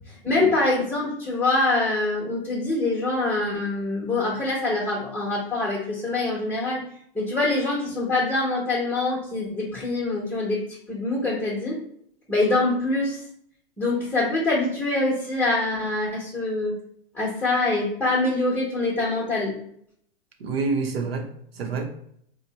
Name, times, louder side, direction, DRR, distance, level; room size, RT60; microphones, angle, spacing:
voice 1, 0.2-6.8 7.1-11.8 12.3-13.2 13.8-16.8 17.1-19.6, left 2 dB, 5° left, -7 dB, 0.9 m, -24 dB
voice 2, 20.4-21.9, right 4 dB, 90° right, 4 dB, 0.8 m, -27 dB
3.0 x 2.1 x 4.0 m, 0.67 s
hypercardioid pair, 120°, 29 cm